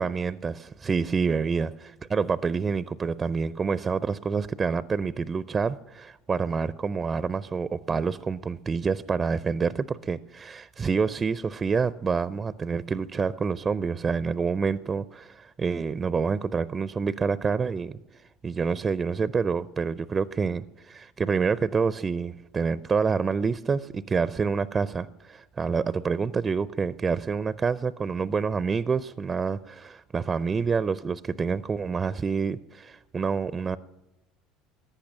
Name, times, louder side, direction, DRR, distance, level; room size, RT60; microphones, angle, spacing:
voice 1, 0.0-17.9 18.4-33.8, right 5 dB, 25° right, 17 dB, 0.4 m, -27 dB
14.5 x 10.0 x 7.2 m, 0.97 s
hypercardioid pair, 70°, 0 cm